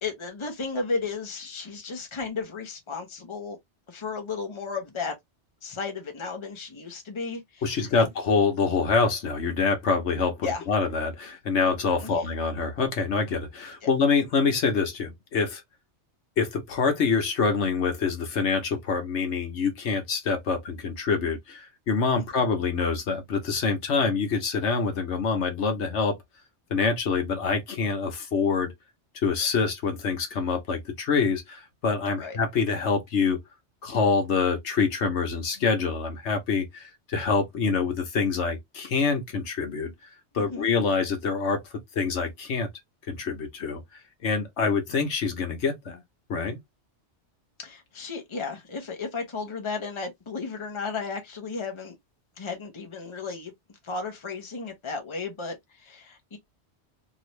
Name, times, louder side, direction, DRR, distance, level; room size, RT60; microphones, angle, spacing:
voice 1, 0.0-3.6 3.9-5.1 5.6-8.1 10.4-10.6 12.0-12.3 13.8-13.9 32.2-32.4 40.3-40.7 47.6-52.0 52.4-53.5 53.8-56.4, left 4 dB, 25° left, 0.9 m, -34 dB
voice 2, 7.6-15.6 16.4-26.2 26.7-28.7 29.2-33.4 33.8-39.9 40.3-41.6 41.9-42.7 43.1-43.8 44.2-46.0 46.3-46.6, left 5 dB, 75° left, 1.3 m, -26 dB
3.1 x 2.6 x 3.1 m
omnidirectional pair, 1.2 m